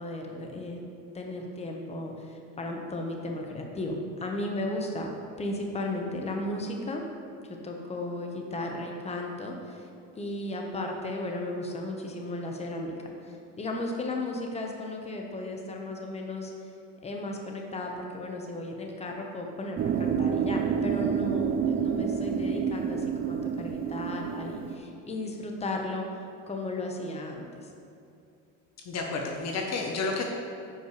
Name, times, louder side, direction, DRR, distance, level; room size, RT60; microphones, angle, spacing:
voice 1, 0.0-5.1 5.4-7.0 7.6-9.9 10.2-16.5 17.0-26.1 26.5-27.7, left 2 dB, 15° left, 1 dB, 1.0 m, -35 dB
sound 1, 19.8-24.8, right 7 dB, 25° right, 0.4 m, -28 dB
voice 2, 28.9-30.2, left 3 dB, 45° left, 1 dB, 0.9 m, -30 dB
9.9 x 5.4 x 3.2 m, 2.6 s
supercardioid pair, 100°, 37 cm